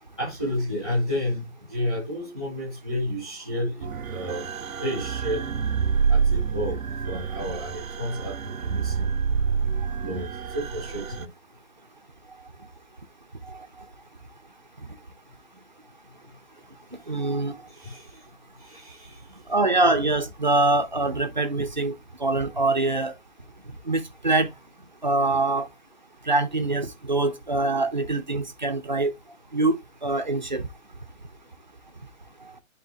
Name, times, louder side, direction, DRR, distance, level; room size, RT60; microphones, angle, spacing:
voice 1, 0.2-4.4 4.8-5.4 6.1-6.8 7.1-9.1 10.0-10.3 10.5-11.3 17.8-18.0 18.6-19.4, left 1 dB, 5° left, 1.3 m, -31 dB
sound 1, 3.8-11.3, right 5 dB, 80° right, 0.8 m, -27 dB
voice 2, 17.1-17.5 19.5-21.9 22.2-23.1 23.9-24.5 25.0-25.7 26.3-29.1 29.5-30.7, right 2 dB, 35° right, 0.8 m, -24 dB
10.5 x 3.6 x 3.4 m
hypercardioid pair, 175°, 40 cm